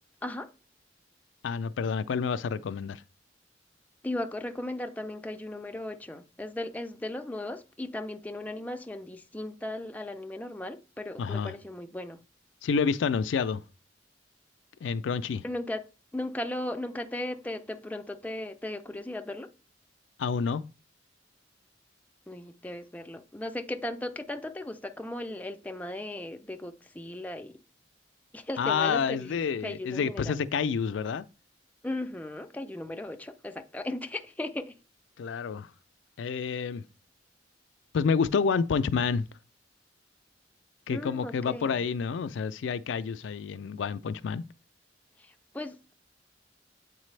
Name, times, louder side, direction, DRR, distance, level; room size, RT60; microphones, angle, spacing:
voice 1, 1.4-3.0 11.2-11.5 12.6-13.6 14.8-15.4 20.2-20.6 28.6-31.2 35.2-35.7 36.2-36.8 37.9-39.2 40.9-44.4, left 6 dB, 85° left, 0.4 m, -28 dB
voice 2, 4.0-12.2 15.4-15.8 16.1-19.5 22.3-27.6 28.3-29.4 29.6-30.4 31.8-34.8 40.9-41.9 45.2-45.9, left 1 dB, 10° left, 0.5 m, -37 dB
8.1 x 4.1 x 3.2 m
head